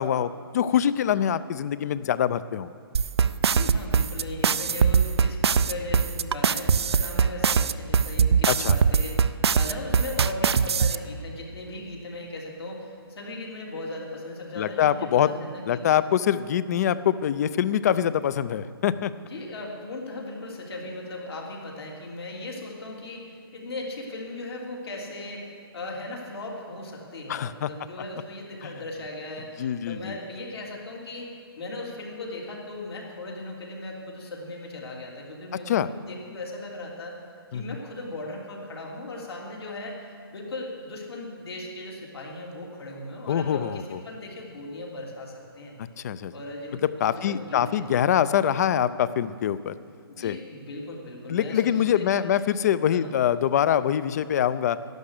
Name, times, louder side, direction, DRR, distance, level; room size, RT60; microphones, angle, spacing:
voice 1, 0.0-2.7 8.5-8.8 14.6-15.3 15.7-19.1 27.3-27.7 28.6-28.7 29.6-30.2 35.7-35.9 37.5-37.8 43.3-44.0 46.0-46.3 47.0-49.7 50.2-50.4 51.3-54.8, left 10 dB, 40° left, 16 dB, 0.5 m, -24 dB
sound 1, 2.9-10.9, right 6 dB, 85° right, 0.5 m, -21 dB
voice 2, 3.5-16.0 19.2-37.2 37.5-45.7 46.3-47.9 50.1-52.4 52.9-53.1, left 2 dB, 75° left, -1 dB, 3.4 m, -38 dB
12.0 x 11.5 x 6.6 m, 2.3 s
hypercardioid pair, 155°, 13 cm